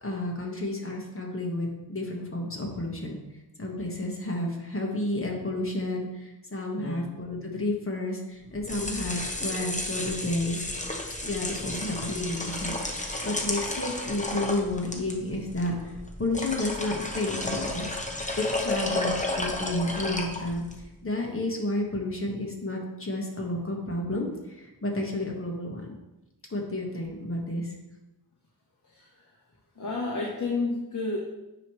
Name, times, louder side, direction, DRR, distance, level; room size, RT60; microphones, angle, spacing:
voice 1, 0.0-3.2 3.6-10.6 11.2-15.9 16.2-17.9 18.4-20.6 21.0-24.3 24.6-25.9 26.5-27.7, left 1 dB, 35° left, -1 dB, 1.5 m, -31 dB
sound 1, 8.5-20.8, left 2 dB, 20° left, 1.0 m, -33 dB
voice 2, 28.8-29.4 29.7-31.2, left 3 dB, 55° left, -2 dB, 1.1 m, -31 dB
9.3 x 3.2 x 3.2 m, 0.99 s
cardioid pair, 40°, 38 cm